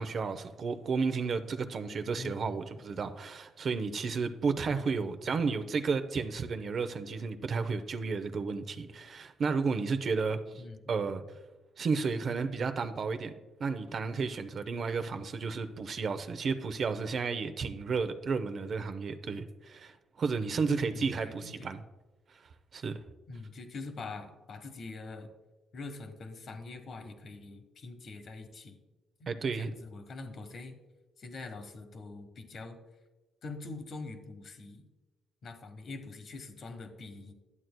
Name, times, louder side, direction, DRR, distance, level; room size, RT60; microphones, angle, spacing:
voice 1, 0.0-10.4 10.9-11.2 11.8-13.3 13.6-21.8 22.7-23.0 29.3-29.7, right 4 dB, 50° right, 9 dB, 0.6 m, -32 dB
voice 2, 2.2-2.6 4.7-5.6 10.6-11.1 20.7-21.7 23.3-25.3 25.7-28.8 29.2-30.8 31.2-32.8 33.4-34.8 35.4-37.3, left 3 dB, 55° left, 7 dB, 1.1 m, -44 dB
11.0 x 7.7 x 2.2 m, 1.1 s
cardioid pair, 90°, 0 cm